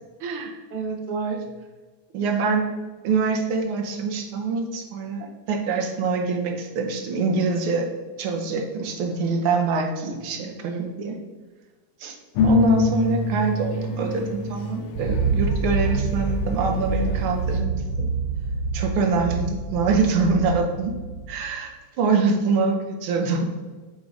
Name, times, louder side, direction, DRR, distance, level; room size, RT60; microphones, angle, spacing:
voice 1, 0.2-1.4 2.1-2.7 3.0-7.9 8.2-11.2 12.0-12.2 12.4-18.1 18.7-21.0 21.3-21.7 22.0-23.4, right 4 dB, 70° right, 2 dB, 1.3 m, -24 dB
sound 1, 12.4-17.6, left 4 dB, 70° left, 1.6 m, -26 dB
sound 2, 15.0-21.5, right 4 dB, 90° right, 1.3 m, -26 dB
8.4 x 3.7 x 3.9 m, 1.3 s
omnidirectional pair, 3.4 m